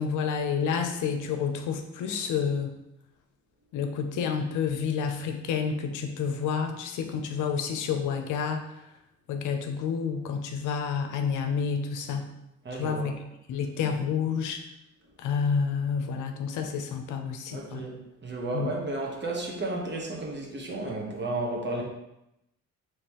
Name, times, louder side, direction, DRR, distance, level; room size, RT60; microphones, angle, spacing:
voice 1, 0.0-2.8 3.7-8.6 9.3-12.3 12.8-13.1 13.5-14.6 15.2-17.9 18.5-18.7, left 6 dB, 85° left, 5 dB, 0.6 m, -29 dB
voice 2, 12.6-13.1 17.5-21.8, right 2 dB, 35° right, 0 dB, 1.1 m, -33 dB
5.2 x 3.1 x 3.0 m, 0.87 s
cardioid pair, 90°, 30 cm